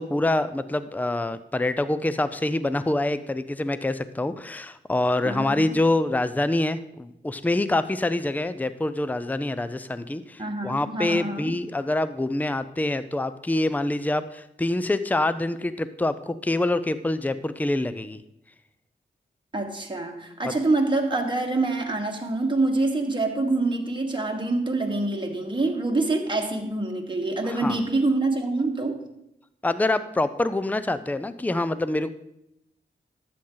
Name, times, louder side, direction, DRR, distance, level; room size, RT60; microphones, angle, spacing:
voice 1, 0.0-18.2 27.4-27.8 29.6-32.1, left 2 dB, 10° left, 13 dB, 0.5 m, -26 dB
voice 2, 5.2-5.8 10.4-11.6 19.5-29.0, right 2 dB, 25° right, 1 dB, 1.5 m, -26 dB
12.5 x 7.7 x 3.9 m, 0.83 s
cardioid pair, 55°, 21 cm